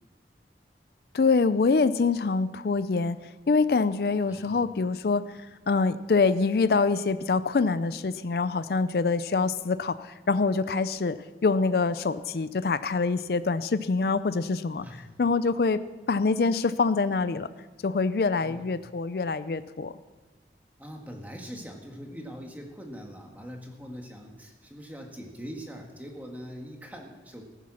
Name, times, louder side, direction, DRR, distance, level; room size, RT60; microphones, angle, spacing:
voice 1, 1.1-3.2 3.5-5.2 5.7-11.2 11.4-14.9 15.2-15.8 16.1-17.5 17.8-19.9, left 4 dB, 60° left, 14 dB, 0.4 m, -25 dB
voice 2, 14.8-15.1 18.4-18.7 20.8-27.4, equal, 10° right, 1 dB, 1.6 m, -42 dB
15.0 x 10.0 x 6.2 m, 1.3 s
head